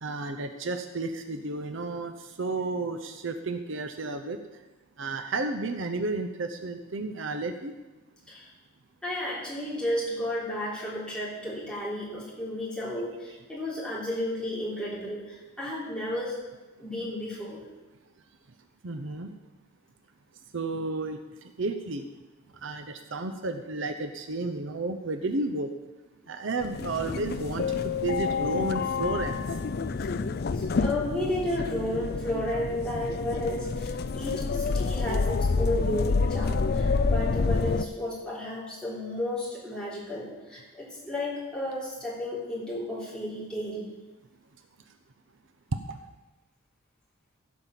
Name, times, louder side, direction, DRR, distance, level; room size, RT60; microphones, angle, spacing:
voice 1, 0.0-4.4 5.0-7.7 18.8-19.3 20.5-22.1 22.6-25.7 26.3-29.3 45.7-46.0, right 3 dB, 60° right, 7 dB, 0.7 m, -32 dB
voice 2, 9.0-16.4 16.8-17.6 30.5-43.9, left 1 dB, 5° left, -7 dB, 3.7 m, -33 dB
sound 1, 26.6-37.8, left 4 dB, 45° left, 0.4 m, -28 dB
16.0 x 5.4 x 7.5 m, 1.1 s
head